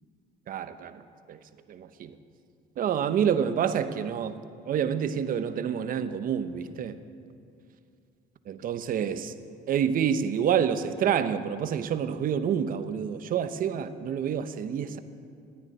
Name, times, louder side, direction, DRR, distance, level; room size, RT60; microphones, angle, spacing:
voice 1, 0.5-1.0 1.3-1.4 1.7-2.2 2.8-4.4 4.6-7.0 8.5-9.3 9.7-15.0, right 8 dB, 55° right, 11 dB, 1.0 m, -28 dB
14.5 x 9.8 x 9.9 m, 2.3 s
cardioid pair, 110°, 17 cm